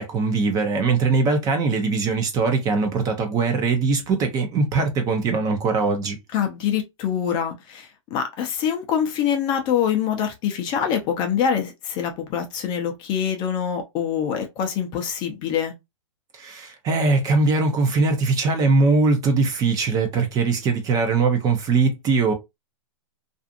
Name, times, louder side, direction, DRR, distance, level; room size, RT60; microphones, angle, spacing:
voice 1, 0.0-6.2 16.3-22.3, right 4 dB, 20° right, 0.6 m, -21 dB
voice 2, 6.3-15.7, left 8 dB, 30° left, 0.6 m, -25 dB
2.5 x 2.4 x 2.5 m
hypercardioid pair, 135°, 17 cm